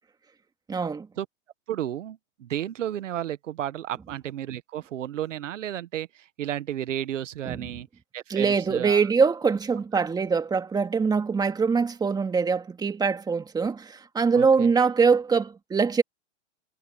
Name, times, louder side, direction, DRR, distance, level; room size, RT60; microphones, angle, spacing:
voice 1, 0.7-1.1 7.4-7.8 8.3-16.0, right 5 dB, 10° right, 2.3 m, -23 dB
voice 2, 1.7-7.9 8.1-9.0 14.3-14.7, right 11 dB, 85° right, 1.4 m, -32 dB
hypercardioid pair, 140°, 36 cm